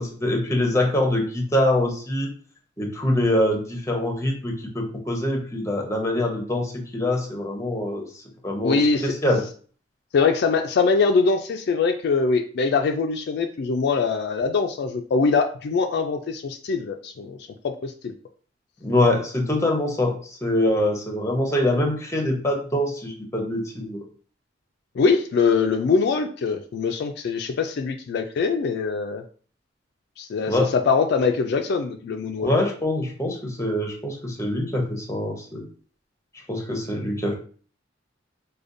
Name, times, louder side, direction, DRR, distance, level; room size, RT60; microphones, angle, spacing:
voice 1, 0.0-2.3 2.8-8.0 8.4-9.4 18.8-24.0 30.5-30.7 32.4-35.7 36.5-37.4, left 1 dB, 15° left, 2 dB, 0.7 m, -24 dB
voice 2, 8.6-9.1 10.1-17.4 17.6-18.1 25.0-29.2 30.2-32.5, left 4 dB, 60° left, 4 dB, 0.3 m, -23 dB
4.9 x 2.2 x 2.5 m, 0.43 s
head